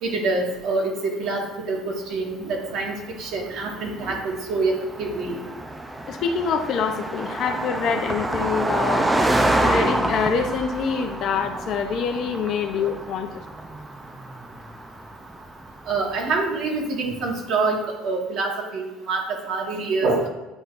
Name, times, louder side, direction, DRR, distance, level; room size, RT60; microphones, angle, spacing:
voice 1, 0.0-5.4 12.8-12.9 15.9-20.3, right 3 dB, 60° right, 1 dB, 1.6 m, -26 dB
Car passing by, 2.8-16.5, right 1 dB, 10° right, 0.5 m, -28 dB
voice 2, 6.1-13.4, left 6 dB, 50° left, 6 dB, 0.7 m, -26 dB
9.7 x 4.4 x 2.6 m, 1.0 s
cardioid pair, 115°, 0 cm